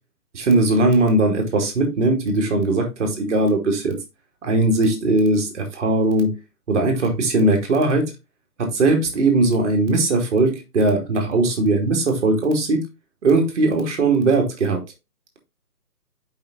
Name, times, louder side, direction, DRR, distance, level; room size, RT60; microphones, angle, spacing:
voice 1, 0.3-3.9 4.4-6.4 6.7-8.1 8.6-12.8 13.2-14.8, right 2 dB, 45° right, 2.6 m, -19 dB
5.5 x 5.5 x 3.7 m
hypercardioid pair, 155°, 49 cm